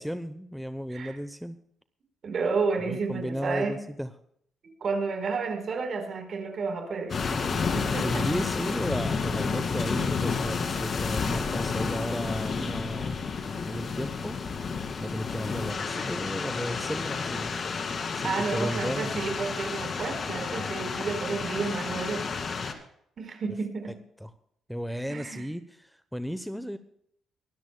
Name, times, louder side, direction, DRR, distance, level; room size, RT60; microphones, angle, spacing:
voice 1, 0.0-1.6 2.9-4.1 8.0-13.2 13.7-14.4 15.0-17.5 18.2-19.1 24.2-24.3 24.7-26.8, equal, ahead, 10 dB, 0.8 m, -34 dB
voice 2, 2.2-3.8 4.6-7.2 7.5-8.3 18.2-22.3 23.2-23.9 25.1-25.5, right 4 dB, 50° right, 6 dB, 4.1 m, -31 dB
sound 1, 7.1-22.7, left 5 dB, 45° left, 2.1 m, -31 dB
23.5 x 13.0 x 2.2 m, 0.72 s
cardioid pair, 90°, 0 cm